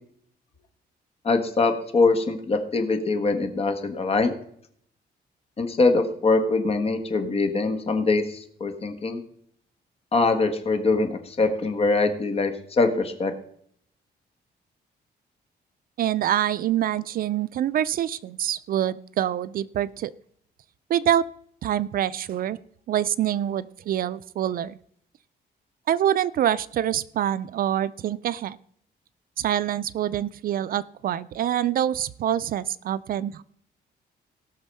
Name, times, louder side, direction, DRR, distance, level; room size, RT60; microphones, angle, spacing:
voice 1, 1.2-4.3 5.6-9.2 10.1-13.3, left 3 dB, 35° left, 7 dB, 1.5 m, -23 dB
voice 2, 16.0-20.1 20.9-21.2 21.6-22.6 22.9-24.8 25.9-28.6 29.4-33.4, right 11 dB, 55° right, 18 dB, 0.4 m, -25 dB
18.0 x 6.2 x 5.4 m, 0.66 s
cardioid pair, 150°, 17 cm